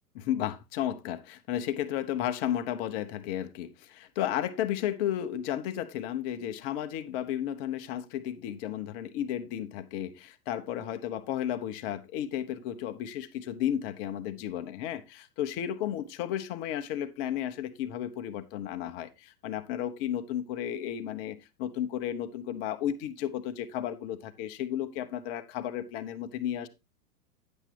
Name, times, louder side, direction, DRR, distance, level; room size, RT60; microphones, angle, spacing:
voice 1, 0.2-26.7, left 11 dB, 35° left, 0.9 m, -33 dB
9.9 x 7.3 x 3.3 m
hypercardioid pair, 115°, 48 cm